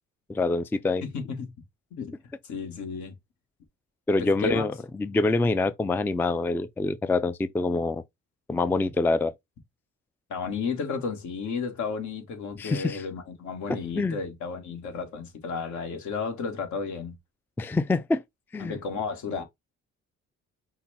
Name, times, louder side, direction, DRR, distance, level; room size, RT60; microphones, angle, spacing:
voice 1, 0.3-1.0 4.1-8.0 8.5-9.3 12.6-13.0 14.0-14.2 17.6-18.2 18.5-18.8, left 3 dB, 5° left, 0.3 m, -25 dB
voice 2, 1.0-1.5 2.0-2.1 2.4-3.1 4.2-4.7 10.3-17.1 18.6-19.4, left 5 dB, 75° left, 1.6 m, -33 dB
5.6 x 2.2 x 4.0 m
cardioid pair, 90°, 30 cm